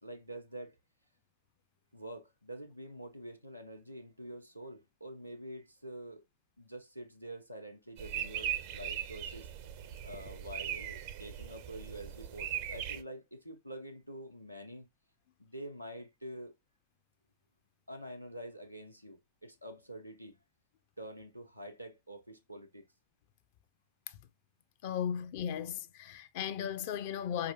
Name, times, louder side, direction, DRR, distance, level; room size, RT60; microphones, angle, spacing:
voice 1, 0.0-0.8 1.9-6.2 6.6-9.5 10.0-14.9 15.4-16.5 17.9-20.4 21.0-22.9, right 1 dB, 90° right, 0.7 m, -47 dB
sound 1, 8.0-13.0, right 11 dB, 45° right, 0.5 m, -39 dB
voice 2, 24.8-27.5, left 9 dB, 50° left, 0.5 m, -36 dB
4.7 x 2.8 x 2.6 m
figure-of-eight pair, 90°, 0 cm